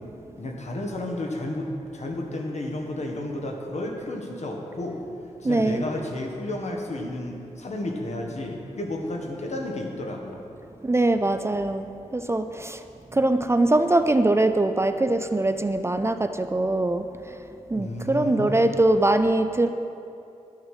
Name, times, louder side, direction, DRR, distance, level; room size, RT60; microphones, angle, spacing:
voice 1, 0.4-5.0 5.4-10.4 17.7-18.6, left 1 dB, 65° left, 1 dB, 1.7 m, -32 dB
voice 2, 5.4-5.8 10.8-12.8 13.1-17.0 17.7-19.7, right 2 dB, 20° right, 8 dB, 0.4 m, -22 dB
12.0 x 9.0 x 5.0 m, 2.7 s
wide cardioid pair, 110°, 12 cm